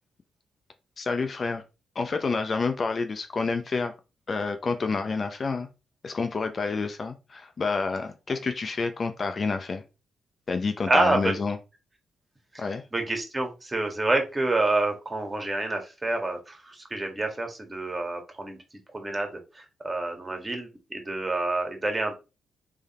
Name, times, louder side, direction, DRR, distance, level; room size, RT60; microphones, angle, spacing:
voice 1, 1.0-1.6 2.0-3.9 4.3-5.7 6.0-9.8 10.5-11.6 12.6-12.8, left 4 dB, 50° left, 7 dB, 0.7 m, -28 dB
voice 2, 10.9-11.4 12.9-18.6 18.9-22.2, right 2 dB, 25° right, 4 dB, 1.7 m, -28 dB
3.5 x 3.5 x 4.2 m, 0.29 s
supercardioid pair, 55°, 0 cm